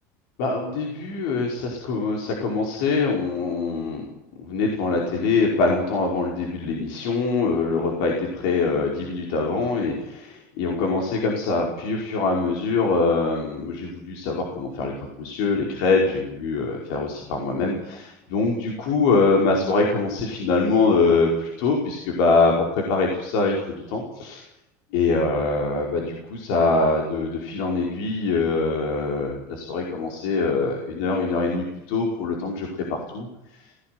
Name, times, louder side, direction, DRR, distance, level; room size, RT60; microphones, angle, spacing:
voice 1, 0.4-4.1 4.4-14.9 15.2-24.4 24.9-33.3, left 3 dB, 70° left, 0 dB, 5.2 m, -23 dB
19.0 x 16.5 x 9.6 m, 0.89 s
cardioid pair, 165°, 8 cm